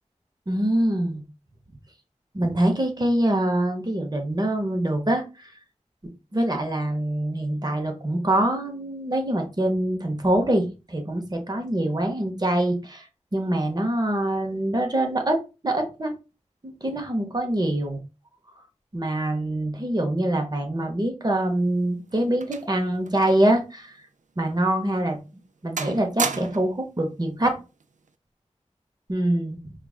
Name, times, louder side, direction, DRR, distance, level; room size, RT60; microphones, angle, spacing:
voice 1, 0.5-1.2 2.3-5.5 6.3-13.1 13.3-16.1 16.6-18.0 18.9-24.0 24.4-25.2 25.6-27.6 29.1-29.7, right 1 dB, 35° right, 3 dB, 0.9 m, -24 dB
sound 1, 21.5-23.6 23.9-24.0 24.7-24.8 25.2-25.5 25.8-26.8 27.8-28.1, right 5 dB, 90° right, 0.4 m, -34 dB
4.6 x 2.4 x 2.3 m, 0.29 s
wide cardioid pair, 45°, 12 cm